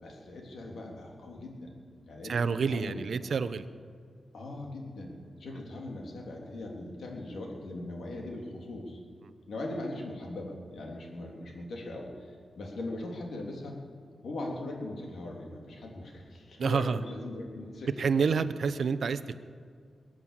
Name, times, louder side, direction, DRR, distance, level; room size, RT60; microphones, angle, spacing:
voice 1, 0.0-1.7 2.1-3.3 4.3-9.0 9.5-13.8 14.2-18.4, left 2 dB, 65° left, 0 dB, 3.3 m, -40 dB
voice 2, 2.3-3.7 5.5-5.6 9.2-9.3 16.6-17.0 18.0-19.3, right 5 dB, 60° right, 12 dB, 0.7 m, -28 dB
21.5 x 8.9 x 7.4 m, 2.1 s
wide cardioid pair, 140°, 0 cm